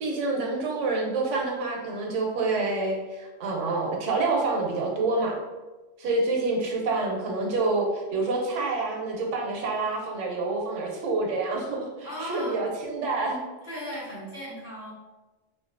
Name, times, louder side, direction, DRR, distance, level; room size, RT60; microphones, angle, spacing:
voice 1, 0.0-5.4 6.0-13.4, right 3 dB, 80° right, 0 dB, 0.9 m, -27 dB
voice 2, 12.0-12.7 13.6-14.9, equal, 40° left, -8 dB, 1.2 m, -36 dB
2.5 x 2.3 x 2.4 m, 1.2 s
omnidirectional pair, 1.2 m